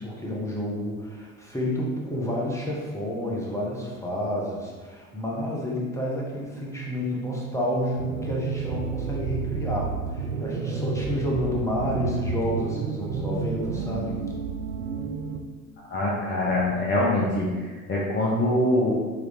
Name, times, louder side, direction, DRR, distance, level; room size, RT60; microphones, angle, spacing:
voice 1, 0.0-14.2, equal, 5° left, -3 dB, 1.1 m, -30 dB
sound 1, 8.0-15.4, right 5 dB, 80° right, 0.5 m, -31 dB
voice 2, 15.9-18.9, left 1 dB, 25° left, -4 dB, 0.8 m, -24 dB
4.8 x 3.1 x 3.5 m, 1.4 s
figure-of-eight pair, 65°, 41 cm